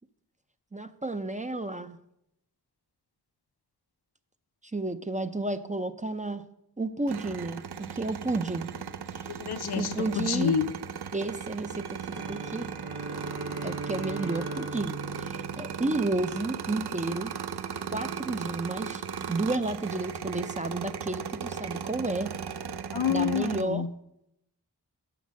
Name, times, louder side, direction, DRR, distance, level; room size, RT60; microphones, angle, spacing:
voice 1, 0.7-2.0 4.7-6.4 6.8-7.6 7.9-8.7 9.1-9.4 9.8-10.6 11.1-12.7 13.6-17.3 17.9-19.0 19.3-22.3 23.1-23.8, right 2 dB, 20° right, 10 dB, 0.5 m, -31 dB
sound 1, 7.1-23.6, right 7 dB, 75° right, 0.5 m, -37 dB
voice 2, 9.3-10.7 22.9-23.9, left 7 dB, 70° left, 12 dB, 0.5 m, -28 dB
sound 2, 12.0-16.5, right 2 dB, 40° right, 1.2 m, -39 dB
7.1 x 6.0 x 6.1 m, 0.80 s
wide cardioid pair, 45°, 40 cm